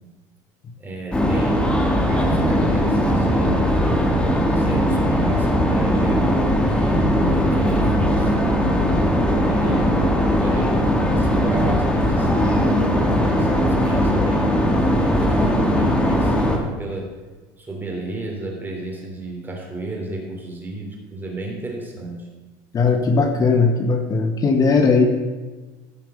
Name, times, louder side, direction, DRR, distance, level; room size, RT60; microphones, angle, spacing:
voice 1, 0.8-1.8 2.1-3.6 4.4-7.3 7.5-8.3 9.4-17.1 17.6-22.3, right 2 dB, 20° right, 0 dB, 3.4 m, -32 dB
sound 1, 1.1-16.6, equal, 10° left, 2.0 m, -19 dB
voice 2, 22.7-25.0, left 4 dB, 35° left, 5 dB, 1.5 m, -18 dB
15.0 x 5.9 x 6.5 m, 1.2 s
supercardioid pair, 105°, 11 cm